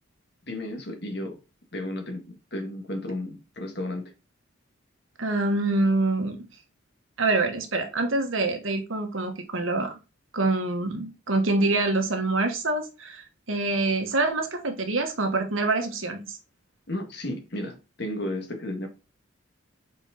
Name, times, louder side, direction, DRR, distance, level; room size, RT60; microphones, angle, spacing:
voice 1, 0.5-1.4 1.7-4.1 16.9-18.9, left 1 dB, 55° left, 1.6 m, -33 dB
voice 2, 5.2-6.5 7.2-10.0 10.3-16.4, right 2 dB, 85° right, 1.4 m, -26 dB
5.1 x 4.6 x 4.2 m
head